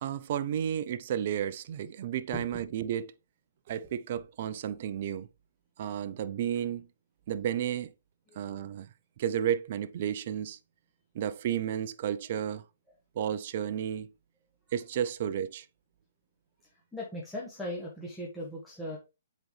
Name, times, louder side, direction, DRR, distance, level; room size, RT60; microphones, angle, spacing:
voice 1, 0.0-3.1 3.7-5.3 5.8-6.9 7.3-7.9 8.4-8.9 9.2-10.6 11.1-12.6 13.2-14.1 14.7-15.7, right 9 dB, 50° right, 0.6 m, -32 dB
voice 2, 16.9-19.0, left 1 dB, 5° left, 1.6 m, -38 dB
7.8 x 4.1 x 3.2 m
hypercardioid pair, 135°, 0 cm